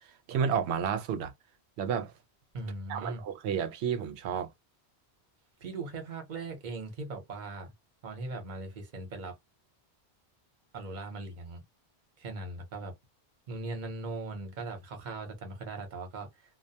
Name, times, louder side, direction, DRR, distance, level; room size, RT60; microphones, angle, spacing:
voice 1, 0.3-1.3 1.8-2.1 2.9-4.5, right 7 dB, 80° right, 0.8 m, -31 dB
voice 2, 2.5-3.2 5.6-7.7 8.0-9.4 10.7-11.6 12.2-12.9 13.5-16.3, right 2 dB, 45° right, 0.9 m, -39 dB
2.2 x 2.1 x 2.7 m
omnidirectional pair, 1.1 m